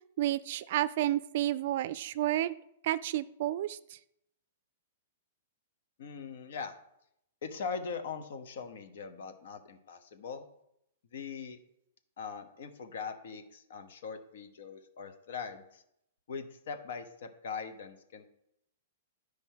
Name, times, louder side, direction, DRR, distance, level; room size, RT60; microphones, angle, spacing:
voice 1, 0.2-2.6 2.8-4.0, right 13 dB, 55° right, 16 dB, 0.4 m, -31 dB
voice 2, 6.0-6.8 7.4-10.4 11.1-11.6 12.2-15.8 16.3-18.3, left 5 dB, 65° left, 7 dB, 1.2 m, -41 dB
10.0 x 5.1 x 4.7 m, 0.77 s
hypercardioid pair, 145°, 0 cm